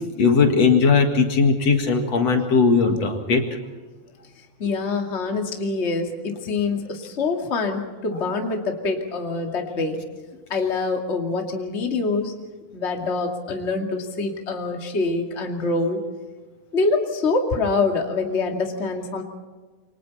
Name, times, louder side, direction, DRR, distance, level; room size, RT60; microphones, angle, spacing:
voice 1, 0.2-3.5, left 5 dB, 60° left, 4 dB, 3.0 m, -18 dB
voice 2, 4.6-10.0 10.5-12.3 12.7-16.0 16.7-19.2, left 3 dB, 25° left, 2 dB, 2.3 m, -25 dB
28.0 x 25.0 x 4.2 m, 1.4 s
omnidirectional pair, 3.4 m